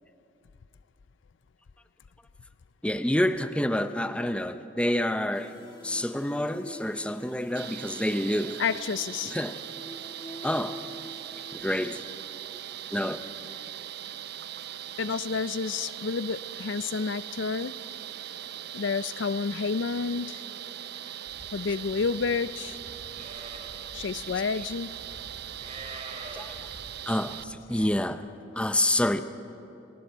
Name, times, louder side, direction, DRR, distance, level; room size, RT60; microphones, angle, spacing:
voice 1, 2.8-5.5 5.8-8.6 9.3-9.6 10.4-10.8 11.5-12.0 12.9-13.2 26.3-26.5 27.1-28.2 28.6-29.2, left 1 dB, 5° left, 0.6 m, -28 dB
sound 1, 5.3-11.5, equal, 25° left, 2.0 m, -46 dB
sound 2, 7.6-27.4, right 10 dB, 60° right, 0.5 m, -40 dB
voice 2, 8.6-9.3 15.0-17.7 18.7-20.4 21.5-22.8 23.9-24.9, left 5 dB, 75° left, 0.4 m, -30 dB
Livestock farm animals working animals, 21.3-27.9, right 2 dB, 35° right, 3.1 m, -47 dB
29.0 x 22.0 x 4.6 m
head